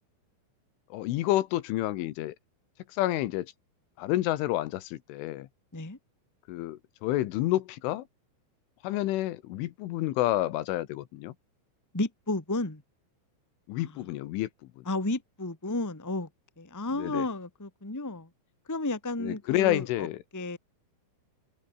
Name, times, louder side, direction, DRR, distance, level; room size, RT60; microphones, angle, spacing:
voice 1, 0.9-2.4 2.9-3.5 4.0-5.5 6.5-8.1 8.8-11.3 13.7-14.5 14.8-14.9 16.9-17.3 19.2-20.2, left 15 dB, 80° left, 3.6 m, -29 dB
voice 2, 11.9-12.8 13.8-13.9 14.8-16.3 16.6-18.3 18.7-20.1 20.3-20.6, left 2 dB, 5° left, 1.3 m, -32 dB
omnidirectional pair, 5.7 m